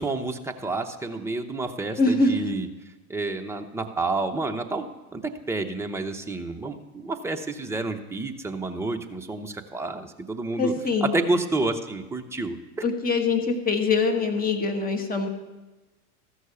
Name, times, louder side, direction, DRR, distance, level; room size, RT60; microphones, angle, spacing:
voice 1, 0.0-2.7 3.1-4.9 5.1-5.2 5.5-10.7 11.0-12.6, right 2 dB, 5° right, 4 dB, 0.8 m, -29 dB
voice 2, 2.0-2.4 10.6-11.1 12.8-15.3, left 3 dB, 20° left, 5 dB, 1.5 m, -23 dB
14.0 x 6.4 x 6.9 m, 1.1 s
hypercardioid pair, 100°, 45 cm